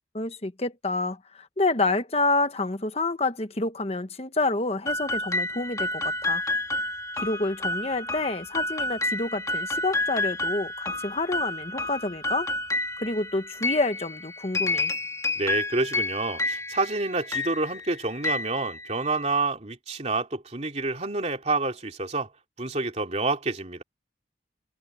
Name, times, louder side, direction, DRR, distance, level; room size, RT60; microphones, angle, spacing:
voice 1, 0.1-6.4 7.2-12.5 13.0-14.9, left 2 dB, 35° left, 1.2 m, -28 dB
sound 1, 4.9-19.3, left 2 dB, 20° left, 1.8 m, -30 dB
voice 2, 15.3-22.3 22.6-23.8, right 3 dB, 35° right, 3.3 m, -28 dB
head